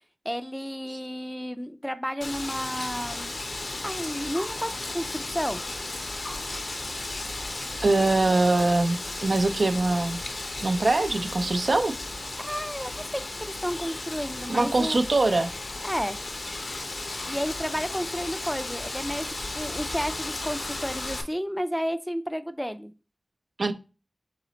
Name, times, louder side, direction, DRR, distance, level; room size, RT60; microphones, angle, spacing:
voice 1, 0.2-3.4 3.8-5.6 12.4-15.0 15.8-16.2 17.3-22.9, equal, ahead, 0.4 m, -32 dB
Wind, 2.2-21.2, left 2 dB, 70° left, 0.7 m, -35 dB
voice 2, 7.8-10.2 10.6-11.9 14.5-15.5 23.6-23.7, right 2 dB, 70° right, 0.4 m, -23 dB
3.9 x 3.1 x 3.9 m
wide cardioid pair, 70°, 0 cm